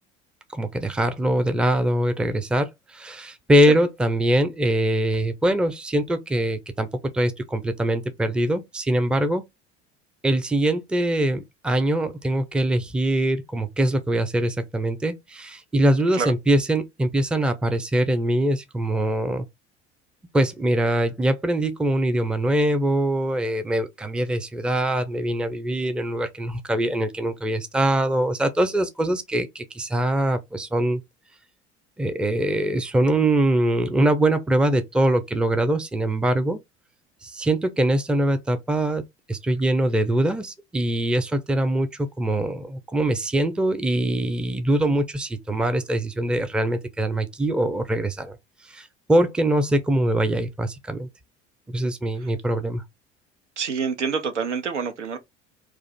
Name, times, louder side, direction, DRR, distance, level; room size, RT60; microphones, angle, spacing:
voice 1, 0.5-6.9 7.1-9.4 10.2-19.4 20.3-31.0 32.0-36.6 37.2-39.0 39.3-48.4 48.7-51.1 51.7-52.8, right 1 dB, 5° right, 0.4 m, -23 dB
voice 2, 53.6-55.2, right 6 dB, 80° right, 0.6 m, -27 dB
3.0 x 2.4 x 4.3 m
figure-of-eight pair, 65°, 35 cm